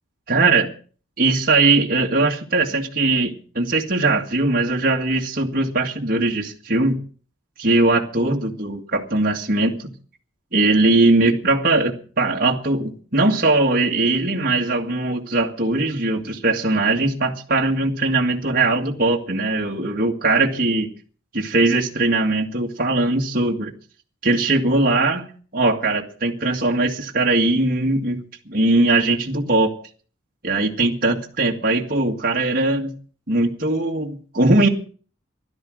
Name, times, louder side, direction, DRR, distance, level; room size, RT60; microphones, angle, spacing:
voice 1, 0.3-0.7 1.2-7.0 7.6-9.9 10.5-20.9 21.3-23.7 24.2-25.3 25.5-29.8 30.4-32.9 33.3-34.7, right 2 dB, 45° right, 0 dB, 1.9 m, -20 dB
16.5 x 12.5 x 6.3 m, 0.42 s
head